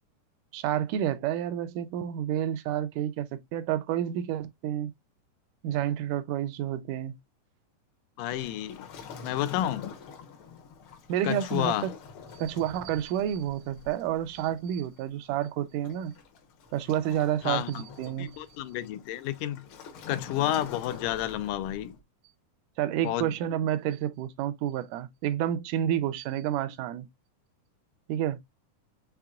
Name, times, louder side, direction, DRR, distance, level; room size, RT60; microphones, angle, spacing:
voice 1, 0.5-4.9 5.6-7.2 11.1-11.9 12.3-16.1 16.7-18.4 22.8-27.1 28.1-28.4, right 11 dB, 85° right, 2.1 m, -30 dB
voice 2, 8.2-8.9 9.2-9.9 11.2-11.9 17.4-17.9 18.2-19.6 20.1-22.0 23.0-23.3, left 13 dB, 85° left, 2.1 m, -30 dB
Waves surf, 8.3-22.0, left 6 dB, 65° left, 1.3 m, -46 dB
5.8 x 3.6 x 2.3 m
omnidirectional pair, 3.7 m